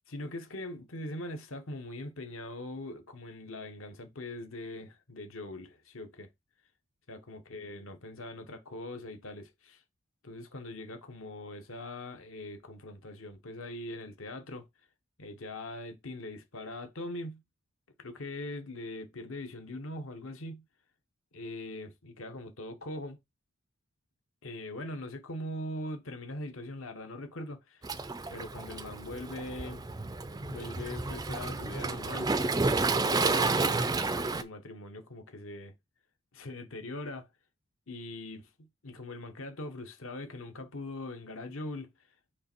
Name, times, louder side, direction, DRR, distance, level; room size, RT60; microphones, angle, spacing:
voice 1, 0.1-6.3 7.1-9.8 10.2-14.7 15.2-17.4 18.0-20.7 21.3-23.2 24.4-27.9 28.3-29.8 30.4-32.3 33.0-35.7 36.3-37.3 37.9-41.9, left 1 dB, 65° left, 1.1 m, -41 dB
Waves surf, 27.8-34.4, right 3 dB, 15° right, 0.4 m, -30 dB
6.5 x 3.3 x 4.5 m
head